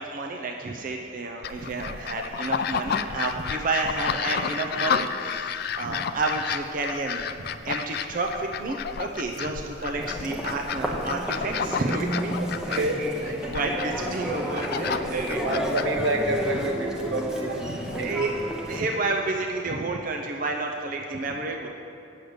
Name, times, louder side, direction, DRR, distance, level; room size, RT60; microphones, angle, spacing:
voice 1, 0.0-12.4 12.6-15.4 17.5-18.3 18.7-21.7, right 3 dB, 45° right, 2 dB, 0.6 m, -30 dB
sound 1, 1.4-16.6, left 7 dB, 55° left, 0.3 m, -31 dB
Human voice, 10.0-18.8, equal, 5° right, 0.9 m, -32 dB
voice 2, 12.7-13.4 15.3-17.7 18.0-18.1, right 1 dB, 85° right, 2 dB, 1.2 m, -28 dB
8.7 x 6.5 x 7.8 m, 2.6 s
head